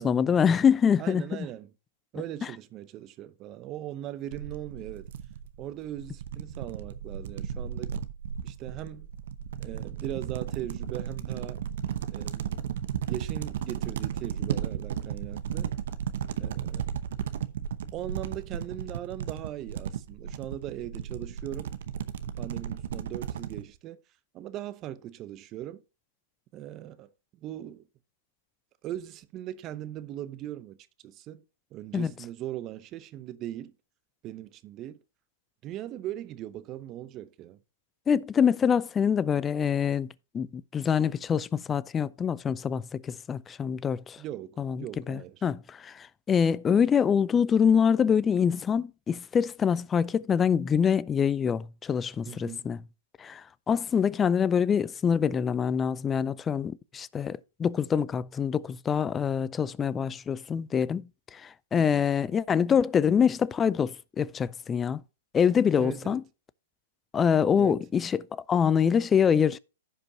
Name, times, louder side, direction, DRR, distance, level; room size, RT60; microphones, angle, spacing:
voice 1, 0.0-1.3 31.9-32.1 38.1-40.1 40.3-44.2 44.6-52.8 53.2-65.0 65.3-66.2 67.1-69.6, left 7 dB, 20° left, 0.4 m, -25 dB
voice 2, 1.0-1.7 2.1-5.1 5.6-8.0 8.4-9.1 9.6-11.6 12.1-12.7 13.1-15.7 16.4-17.0 17.9-21.7 22.4-24.0 24.3-25.8 26.5-27.9 28.8-30.8 31.0-31.5 31.7-33.7 34.2-35.0 35.6-37.6 44.2-45.5 52.2-52.7 61.7-62.0 65.8-66.2 67.6-67.9, right 12 dB, 30° right, 0.7 m, -39 dB
sound 1, 4.3-23.6, right 9 dB, 65° right, 0.8 m, -35 dB
15.5 x 5.2 x 2.8 m
hypercardioid pair, 125°, 0 cm